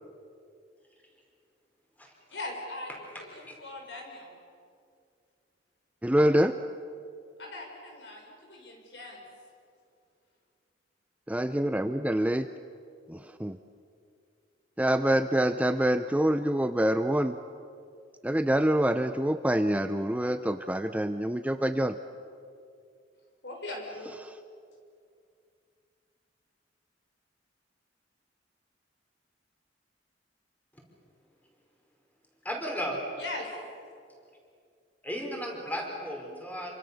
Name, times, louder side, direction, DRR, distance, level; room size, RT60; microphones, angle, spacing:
voice 1, 2.3-4.3 7.4-9.2 23.4-24.1 33.2-33.5, left 2 dB, 70° left, 1 dB, 5.9 m, -40 dB
voice 2, 6.0-6.6 11.3-12.5 13.1-13.6 14.8-17.4 18.2-21.9, right 1 dB, 10° right, 9 dB, 0.6 m, -26 dB
voice 3, 32.4-33.0 35.0-36.7, equal, 10° left, 0 dB, 5.0 m, -34 dB
28.0 x 25.0 x 7.1 m, 2.3 s
head